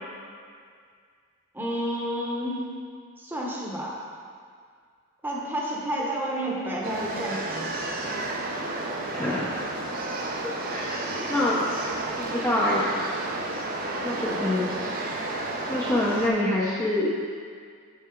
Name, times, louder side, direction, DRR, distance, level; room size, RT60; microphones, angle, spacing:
voice 1, 1.5-2.6 3.2-4.0 5.2-7.7 14.3-14.5, equal, 10° right, -4 dB, 0.9 m, -30 dB
sound 1, 6.8-16.3, right 2 dB, 45° right, 0.7 m, -31 dB
voice 2, 9.1-9.5 10.4-11.6 12.2-13.0 14.0-14.7 15.7-17.1, left 1 dB, 10° left, -7 dB, 0.6 m, -26 dB
6.9 x 5.7 x 3.7 m, 2.1 s
head